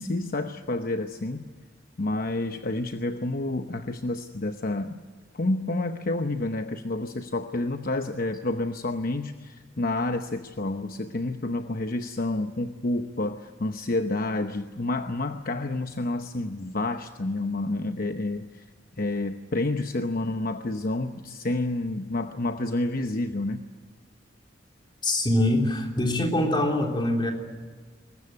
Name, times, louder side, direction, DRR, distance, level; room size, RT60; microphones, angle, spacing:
voice 1, 0.0-1.5 2.0-5.0 5.3-18.6 19.0-23.6, left 2 dB, 50° left, 7 dB, 0.9 m, -29 dB
voice 2, 25.0-27.3, left 1 dB, 25° left, 3 dB, 3.5 m, -24 dB
22.5 x 19.5 x 9.6 m, 1.5 s
head